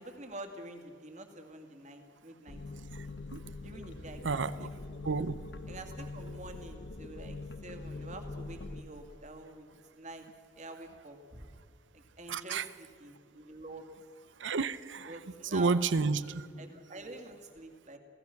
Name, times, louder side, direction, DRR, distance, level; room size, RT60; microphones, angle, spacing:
voice 1, 0.0-3.2 3.6-5.1 5.7-9.7 10.0-10.3 10.5-11.5 11.9-13.9 15.0-15.9 16.6-18.0, right 2 dB, 40° right, 5 dB, 2.2 m, -47 dB
sound 1, 2.5-8.8, left 2 dB, 65° left, 1.1 m, -43 dB
voice 2, 4.2-4.7 5.0-5.4 12.3-12.6 14.4-15.1 15.5-16.5, right 4 dB, 75° right, 15 dB, 0.7 m, -30 dB
27.0 x 17.0 x 5.9 m, 2.1 s
head